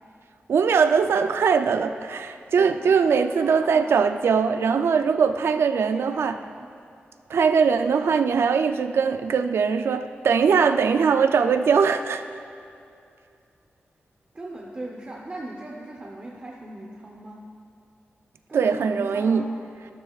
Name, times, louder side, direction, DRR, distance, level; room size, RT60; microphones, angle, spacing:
voice 1, 0.5-6.4 7.3-12.2 18.5-19.5, right 6 dB, 90° right, 9 dB, 0.4 m, -21 dB
voice 2, 2.6-4.3 4.5-4.8 5.5-6.7 14.3-17.4 18.5-19.5, right 1 dB, 30° right, -2 dB, 0.8 m, -39 dB
13.0 x 12.5 x 2.4 m, 2.5 s
wide cardioid pair, 160°, 4 cm